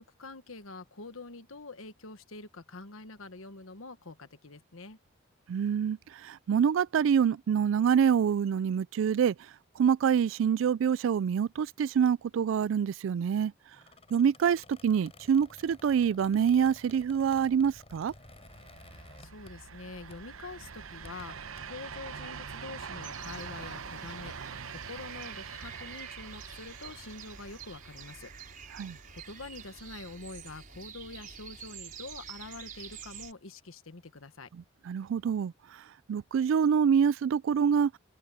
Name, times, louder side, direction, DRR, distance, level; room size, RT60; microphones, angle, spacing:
voice 1, 0.0-5.0 18.9-28.3 28.6-28.8 29.1-34.5, left 3 dB, 85° left, 1.4 m, -46 dB
voice 2, 5.5-9.3 9.8-13.5 14.1-18.1 28.7-29.0 34.9-35.5 36.1-37.9, right 7 dB, 65° right, 0.3 m, -26 dB
Squeak, 13.7-19.8 20.1-20.4 20.9-21.6, left 2 dB, 30° left, 6.5 m, -53 dB
sound 1, 18.2-30.2, right 6 dB, 85° right, 0.9 m, -45 dB
sound 2, 23.0-33.3, right 7 dB, 40° right, 5.1 m, -48 dB
open air
head